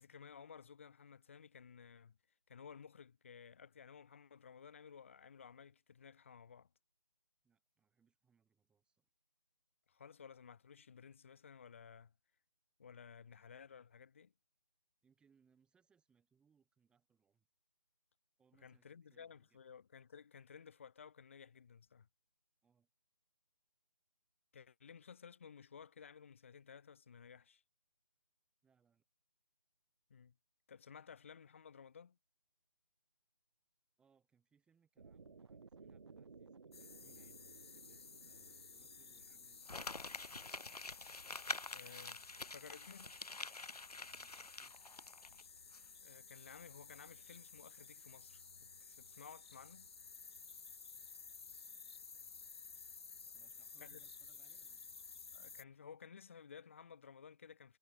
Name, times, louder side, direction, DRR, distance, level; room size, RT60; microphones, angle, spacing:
voice 1, 0.0-2.2 2.5-6.7 9.9-12.1 12.8-14.3 18.6-22.1 24.5-27.6 30.1-30.3 30.7-32.2 41.7-43.1 46.0-49.9 53.8-54.0 55.3-57.8, left 7 dB, 20° left, 0.7 m, -56 dB
voice 2, 7.4-9.1 15.0-17.5 18.4-19.6 22.6-22.9 28.6-29.0 34.0-39.8 44.1-45.3 53.3-54.9, right 6 dB, 5° right, 6.3 m, -76 dB
sound 1, 35.0-41.1, right 4 dB, 45° right, 1.9 m, -60 dB
sound 2, 36.7-55.6, left 5 dB, 40° left, 1.8 m, -55 dB
Crumpling crinkling, 39.7-45.4 45.7-45.8, left 3 dB, 80° left, 0.8 m, -47 dB
figure-of-eight pair, 150°, 20 cm